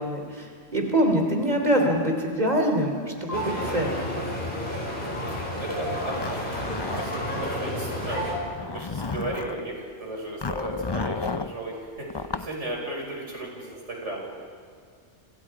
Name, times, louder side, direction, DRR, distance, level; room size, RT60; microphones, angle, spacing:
voice 1, 0.0-2.9 3.2-4.2, equal, 35° right, 2 dB, 3.7 m, -24 dB
sound 1, 3.3-8.4, equal, 45° left, 5.2 m, -31 dB
sound 2, 3.3-3.4 5.7-5.8 8.1-8.3 10.5-10.9, right 1 dB, 55° right, 5.8 m, -32 dB
voice 2, 5.6-14.2, right 2 dB, 85° right, -1 dB, 6.0 m, -36 dB
Zipper (clothing), 6.0-7.5 8.4-9.6 10.4-11.5 12.1-12.5, left 4 dB, 30° left, 0.6 m, -32 dB
29.5 x 26.5 x 5.0 m, 2.1 s
omnidirectional pair, 1.2 m